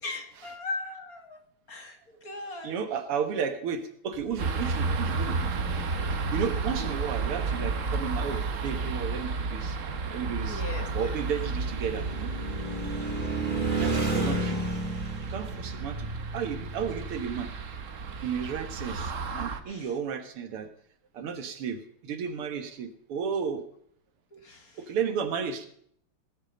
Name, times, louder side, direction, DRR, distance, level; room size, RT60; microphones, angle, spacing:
voice 1, 0.0-1.4 1.7-2.7 6.8-6.9 10.5-11.2 13.3-13.7 19.3-19.9 24.3-24.8, left 3 dB, 45° left, 4 dB, 2.2 m, -39 dB
voice 2, 2.6-5.6 6.3-9.8 10.1-10.6 10.9-12.3 13.8-14.6 15.3-16.1 16.3-17.5 18.2-19.1 19.4-20.7 21.1-23.6 24.9-25.7, right 7 dB, 85° right, 8 dB, 2.4 m, -33 dB
sound 1, 4.1-4.5 5.0-5.9 6.2-6.4 6.8-7.0 7.7-7.8 7.9-17.8, right 2 dB, 25° right, 1.7 m, -34 dB
sound 2, 4.4-19.6, right 4 dB, 45° right, 1.1 m, -32 dB
18.5 x 8.3 x 5.2 m, 0.66 s
omnidirectional pair, 2.4 m